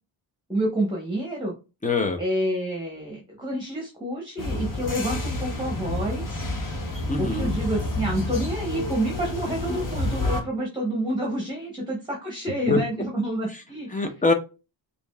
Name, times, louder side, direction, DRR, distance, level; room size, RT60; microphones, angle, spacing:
voice 1, 0.5-1.5 2.2-6.4 7.2-14.0, right 1 dB, 10° right, -1 dB, 1.0 m, -28 dB
voice 2, 1.8-2.2 7.1-7.5 12.7-12.8 13.9-14.3, left 3 dB, 15° left, 5 dB, 0.6 m, -23 dB
sound 1, 4.4-10.4, left 2 dB, 45° left, 1.2 m, -29 dB
5.0 x 2.7 x 2.3 m, 0.30 s
wide cardioid pair, 140°, 46 cm